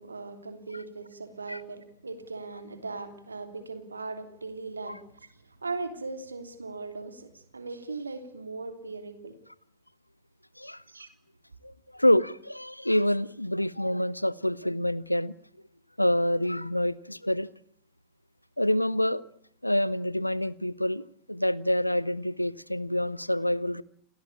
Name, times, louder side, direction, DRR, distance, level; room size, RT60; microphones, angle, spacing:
voice 1, 0.0-9.3 10.9-11.1, right 3 dB, 80° right, 3.3 m, -39 dB
voice 2, 11.6-15.3 16.0-17.5 18.6-19.2 19.6-23.8, left 1 dB, 90° left, 1.0 m, -27 dB
30.0 x 18.5 x 8.8 m
figure-of-eight pair, 90°, 0 cm